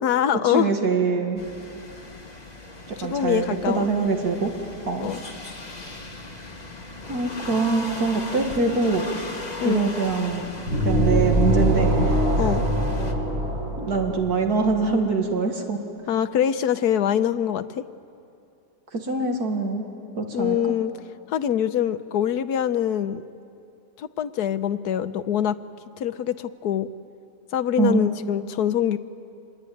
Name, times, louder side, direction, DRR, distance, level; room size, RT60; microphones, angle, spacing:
voice 1, 0.0-0.7 3.0-3.9 5.0-5.2 9.6-9.9 12.4-12.6 16.1-17.8 20.3-20.9 21.3-23.2 24.0-25.6 26.0-26.9 27.5-29.0, left 10 dB, 80° left, 12 dB, 1.3 m, -24 dB
voice 2, 0.5-1.4 2.9-4.5 4.9-5.1 7.1-9.1 9.6-10.5 10.8-12.5 13.8-15.8 18.9-19.8 20.2-20.6 27.8-28.1, right 4 dB, 70° right, 3 dB, 2.3 m, -24 dB
sound 1, 1.4-13.1, left 2 dB, 25° left, 1.9 m, -38 dB
sound 2, 10.7-14.5, right 1 dB, 40° right, 5.7 m, -22 dB
27.0 x 21.0 x 9.3 m, 2.6 s
omnidirectional pair, 1.7 m